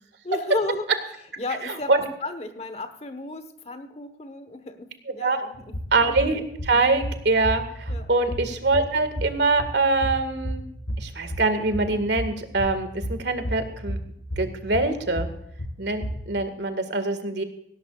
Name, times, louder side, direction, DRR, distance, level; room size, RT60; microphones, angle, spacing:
voice 1, 0.2-0.8 1.4-5.7 7.9-8.1, left 2 dB, 35° left, 9 dB, 1.3 m, -33 dB
voice 2, 1.6-2.0 5.2-5.4 5.9-10.6 11.0-14.0 14.4-15.3 15.8-17.4, right 3 dB, 75° right, 9 dB, 1.9 m, -24 dB
sound 1, 5.5-16.4, equal, 75° left, 1.9 m, -33 dB
18.0 x 17.5 x 2.4 m, 0.73 s
head